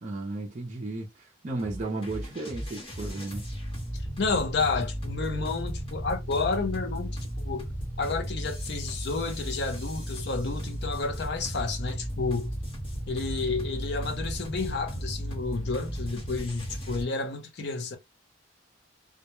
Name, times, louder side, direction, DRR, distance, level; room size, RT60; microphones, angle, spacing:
voice 1, 0.0-3.4 13.4-13.5, right 2 dB, 35° right, 0.4 m, -34 dB
sound 1, 1.6-17.0, equal, 25° left, 1.1 m, -35 dB
voice 2, 3.9-7.7 8.0-12.5 13.1-18.0, left 4 dB, 55° left, 0.6 m, -31 dB
2.2 x 2.0 x 2.9 m
head